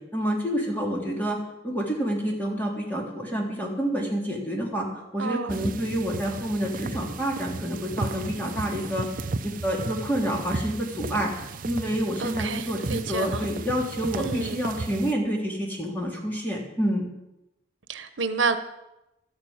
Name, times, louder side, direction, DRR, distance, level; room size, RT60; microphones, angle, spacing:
voice 1, 0.1-1.4 1.6-9.1 9.4-17.0, equal, 10° left, 3.2 m, -28 dB
voice 2, 5.2-5.6 12.2-13.4 14.2-14.6 17.9-18.6, right 4 dB, 85° right, 1.0 m, -29 dB
sound 1, 5.5-15.1, right 3 dB, 45° right, 0.6 m, -35 dB
12.5 x 9.0 x 8.7 m
head